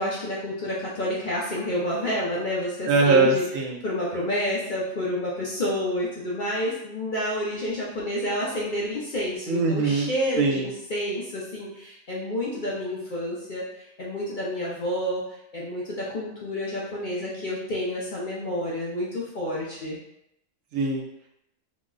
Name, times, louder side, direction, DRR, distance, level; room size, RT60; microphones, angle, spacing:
voice 1, 0.0-3.4 3.8-15.2 15.5-20.0, left 1 dB, 50° left, -5 dB, 0.6 m, -29 dB
voice 2, 2.9-3.8 9.5-10.1 10.4-10.7 20.7-21.0, right 4 dB, 80° right, 0 dB, 1.0 m, -21 dB
3.0 x 2.1 x 3.6 m, 0.81 s
omnidirectional pair, 1.4 m